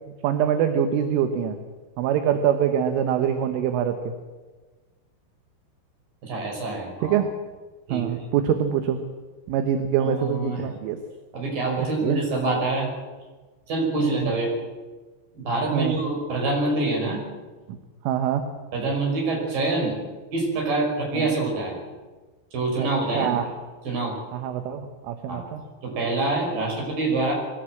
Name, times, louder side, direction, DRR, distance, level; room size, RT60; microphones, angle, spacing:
voice 1, 0.2-1.6 2.0-4.0 7.0-7.3 7.9-9.0 9.5-11.0 11.8-12.2 14.0-14.3 15.7-16.0 18.1-18.4 21.1-21.4 22.8-22.9 23.2-23.5 24.3-25.6, right 9 dB, 75° right, 7 dB, 3.6 m, -24 dB
voice 2, 6.2-7.2 7.9-8.1 10.0-10.7 11.3-12.9 13.7-14.5 15.3-17.2 18.7-20.0 20.3-21.8 22.5-23.4 23.8-24.2 25.3-25.4 25.8-27.3, right 2 dB, 45° right, 0 dB, 7.1 m, -26 dB
23.0 x 17.0 x 7.8 m, 1.3 s
omnidirectional pair, 5.9 m